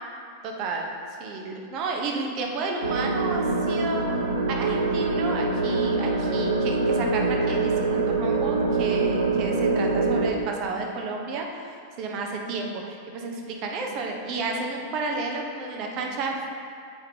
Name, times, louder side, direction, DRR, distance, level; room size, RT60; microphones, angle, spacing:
voice 1, 0.4-0.9 1.2-4.1 4.5-7.7 8.1-11.5 12.0-16.5, right 3 dB, 40° right, 1 dB, 0.8 m, -31 dB
sound 1, 2.8-10.3, right 3 dB, 70° right, 0.5 m, -24 dB
7.9 x 5.1 x 2.8 m, 2.3 s
figure-of-eight pair, 90°, 0 cm